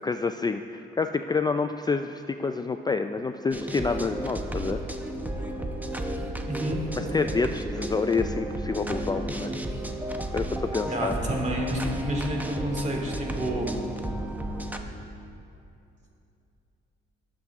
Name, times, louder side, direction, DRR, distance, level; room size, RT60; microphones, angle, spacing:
voice 1, 0.0-4.8 7.0-9.5 10.3-11.1, left 4 dB, 20° left, 8 dB, 0.4 m, -28 dB
sound 1, 3.5-14.8, right 1 dB, 10° right, 0.9 m, -33 dB
voice 2, 6.5-6.8 10.8-13.7, right 1 dB, 35° right, 0 dB, 2.7 m, -29 dB
21.5 x 7.4 x 3.6 m, 2.7 s
cardioid pair, 90°, 20 cm